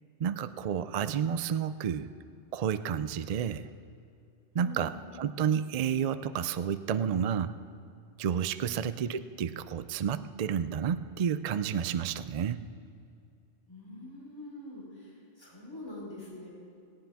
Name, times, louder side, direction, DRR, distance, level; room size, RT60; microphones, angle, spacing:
voice 1, 0.2-2.1 2.5-3.7 4.5-7.5 8.2-12.6, right 8 dB, 70° right, 12 dB, 0.3 m, -30 dB
voice 2, 4.5-5.0 8.6-8.9 13.7-16.5, left 2 dB, 20° left, -5 dB, 4.3 m, -45 dB
17.5 x 17.5 x 3.5 m, 2.6 s
omnidirectional pair, 1.2 m